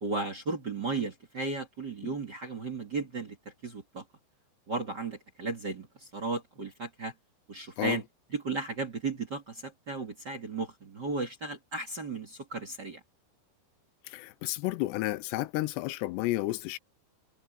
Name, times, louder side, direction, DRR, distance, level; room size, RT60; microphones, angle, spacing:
voice 1, 0.0-3.4 3.6-4.0 4.7-7.1 7.5-8.0 8.3-13.0, right 3 dB, 35° right, 1.8 m, -35 dB
voice 2, 14.1-16.8, left 18 dB, 85° left, 2.8 m, -31 dB
omnidirectional pair, 5.0 m